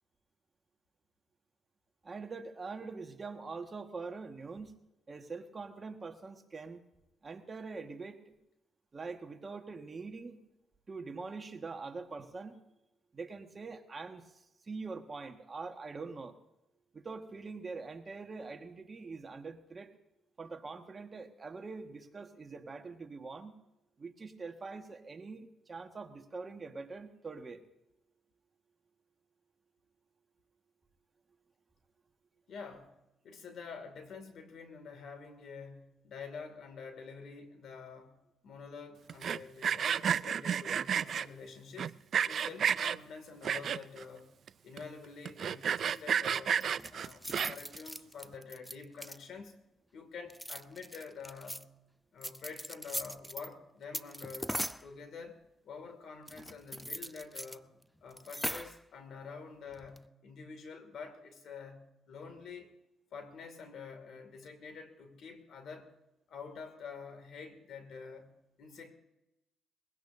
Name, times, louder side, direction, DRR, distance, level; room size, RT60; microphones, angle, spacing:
voice 1, 2.0-4.8 5.1-6.8 7.2-8.3 8.9-10.4 10.9-12.6 13.1-16.4 16.9-19.9 20.4-23.5 24.0-27.6, right 4 dB, 35° right, 5 dB, 1.6 m, -44 dB
voice 2, 32.5-33.0 33.2-42.0 42.3-44.3 44.6-46.6 46.9-49.6 49.9-51.7 52.1-57.7 58.0-62.8 63.1-65.9 66.3-68.9, left 5 dB, 65° left, 7 dB, 2.3 m, -48 dB
Sawing, 39.1-41.3 41.8-43.0 43.4-44.0 44.5-44.6 44.8-44.9 45.3-47.8, right 8 dB, 60° right, 0.4 m, -31 dB
sound 1, 46.6-49.4 50.2-51.6 52.2-53.5 53.9-54.9 56.3-57.6 57.8-57.9 58.1-58.8 59.7-60.1, equal, ahead, 0.5 m, -40 dB
21.5 x 16.5 x 2.7 m, 0.92 s
cardioid pair, 90°, 0 cm